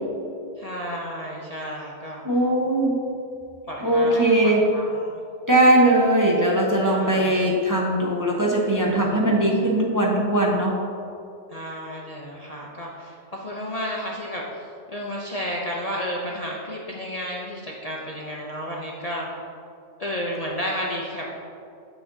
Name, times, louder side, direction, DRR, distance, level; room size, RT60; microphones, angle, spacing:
voice 1, 0.6-2.2 3.7-5.2 6.8-7.4 11.5-19.3 20.0-21.4, equal, 40° left, -3 dB, 0.7 m, -32 dB
voice 2, 2.2-3.0 3.8-4.7 5.5-10.8, right 1 dB, 20° right, -3 dB, 0.8 m, -20 dB
8.8 x 7.4 x 2.7 m, 2.6 s
omnidirectional pair, 1.3 m